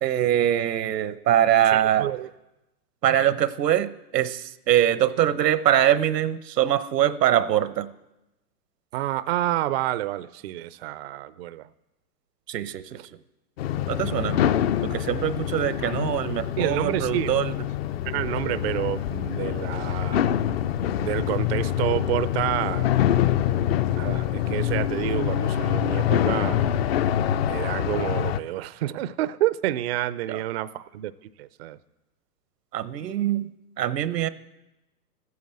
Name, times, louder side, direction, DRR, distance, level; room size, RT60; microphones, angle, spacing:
voice 1, 0.0-2.1 3.0-7.9 12.5-13.0 13.9-14.4 14.8-17.5 30.3-30.4 32.7-33.5 33.8-34.3, right 11 dB, 85° right, 15 dB, 0.9 m, -23 dB
voice 2, 1.7-2.3 8.9-11.7 16.6-17.3 18.1-20.2 21.0-23.0 23.9-26.6 27.5-31.8, right 14 dB, 45° right, 16 dB, 0.4 m, -28 dB
sound 1, 13.6-28.4, left 11 dB, 40° left, 0.5 m, -25 dB
14.0 x 9.5 x 7.5 m, 0.98 s
hypercardioid pair, 135°, 48 cm